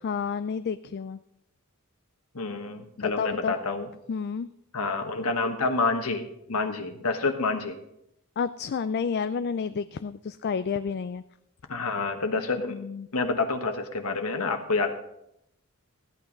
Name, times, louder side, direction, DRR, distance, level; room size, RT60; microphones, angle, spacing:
voice 1, 0.0-1.2 3.0-3.5 4.1-4.5 8.4-11.2 12.7-13.1, left 6 dB, 45° left, 12 dB, 0.4 m, -30 dB
voice 2, 2.3-3.9 4.7-7.8 11.7-12.8 13.1-15.0, left 3 dB, 75° left, 6 dB, 1.3 m, -28 dB
14.5 x 8.8 x 5.2 m, 0.79 s
head